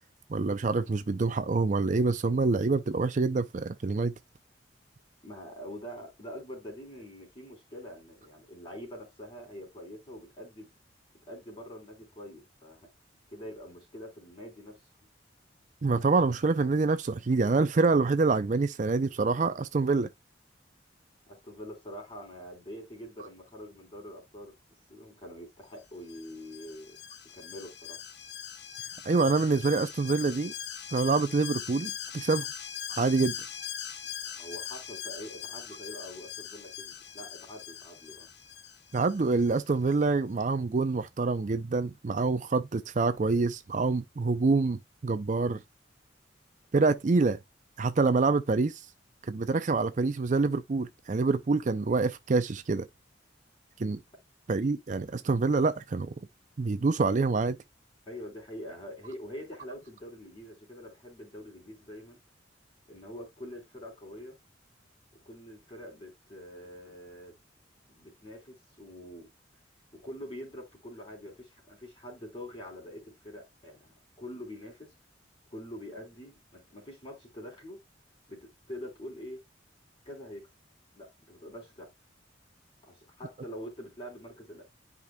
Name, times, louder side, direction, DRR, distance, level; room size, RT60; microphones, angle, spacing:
voice 1, 0.3-4.1 15.8-20.1 29.0-30.5 30.9-32.5 32.9-33.3 38.9-45.6 46.7-47.4 47.8-48.8 49.3-52.9 53.8-54.0 54.5-56.1 56.6-57.6, right 3 dB, 40° right, 0.4 m, -26 dB
voice 2, 5.2-10.7 11.3-12.9 13.3-14.8 21.2-24.5 24.9-27.0 27.3-28.0 34.4-38.3 58.1-62.2 62.9-64.4 65.3-67.3 67.9-69.3 70.0-74.9 75.5-77.8 78.3-78.4 78.7-79.4 80.1-80.5 81.0-81.9 82.8-84.6, equal, 30° left, 3.6 m, -45 dB
Alarm, 26.1-39.6 39.9-40.0, left 9 dB, 60° left, 0.9 m, -41 dB
10.5 x 5.1 x 2.2 m
head